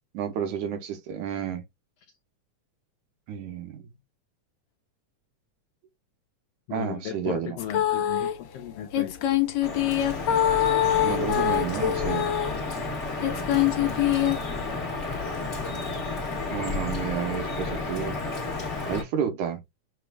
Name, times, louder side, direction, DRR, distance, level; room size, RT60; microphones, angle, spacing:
voice 1, 0.1-1.6 3.3-3.8 6.7-7.6 11.0-12.3 16.5-18.2 18.9-19.6, right 8 dB, 75° right, 2.4 m, -31 dB
voice 2, 6.7-9.2, left 9 dB, 85° left, 1.4 m, -36 dB
sound 1, 7.6-8.3 8.9-12.6 13.2-14.4, left 11 dB, 70° left, 2.0 m, -24 dB
Drip, 9.6-19.0, left 3 dB, 35° left, 1.2 m, -32 dB
7.7 x 3.1 x 2.2 m
omnidirectional pair, 3.5 m